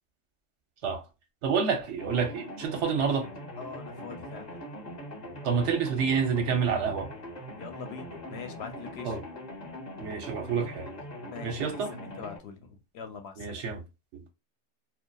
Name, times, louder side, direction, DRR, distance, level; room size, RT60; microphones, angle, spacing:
voice 1, 1.4-3.3 5.4-7.1 9.0-9.2 10.0-10.9 11.4-11.9 13.4-13.8 14.1-14.3, right 6 dB, 75° right, 1.0 m, -28 dB
sound 1, 2.0-12.4, left 1 dB, 40° left, 0.9 m, -42 dB
voice 2, 3.6-4.5 7.6-9.2 11.3-13.6, left 5 dB, 65° left, 0.8 m, -43 dB
2.7 x 2.2 x 2.2 m
omnidirectional pair, 1.2 m